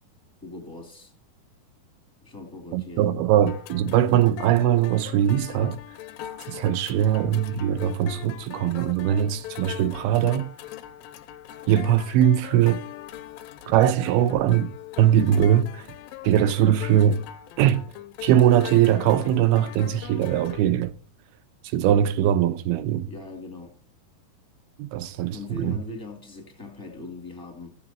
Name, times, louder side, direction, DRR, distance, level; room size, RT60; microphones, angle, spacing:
voice 1, 0.4-1.1 2.2-3.1 23.1-23.8 25.3-27.8, left 2 dB, 5° left, 2.1 m, -40 dB
voice 2, 2.7-5.8 6.5-10.5 11.7-12.8 13.7-14.7 15.0-15.9 16.2-17.2 17.6-17.8 18.2-20.9 21.6-23.1 24.8-25.8, right 10 dB, 85° right, 2.7 m, -21 dB
sound 1, 3.5-20.6, left 13 dB, 80° left, 2.3 m, -41 dB
17.0 x 7.6 x 3.0 m
omnidirectional pair, 4.4 m